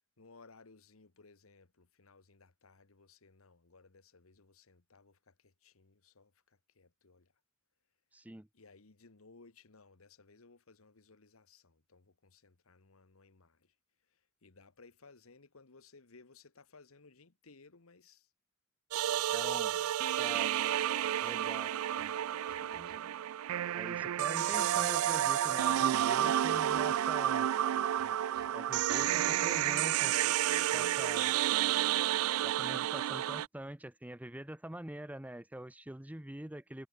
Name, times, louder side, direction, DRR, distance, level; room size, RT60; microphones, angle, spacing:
voice 1, 0.2-7.3 8.5-13.7 14.1-18.3 19.0-23.1, left 4 dB, 85° left, 1.4 m, -60 dB
voice 2, 8.1-8.5 19.3-19.7 20.2-20.5 21.2-21.7 23.7-27.5 28.5-30.2 30.7-31.4 32.4-36.9, right 1 dB, 5° right, 0.7 m, -44 dB
sound 1, 18.9-33.5, right 12 dB, 90° right, 0.3 m, -31 dB
sound 2, 22.0-23.4 24.0-25.4 26.0-27.3 28.0-29.8, right 5 dB, 45° right, 1.9 m, -56 dB
head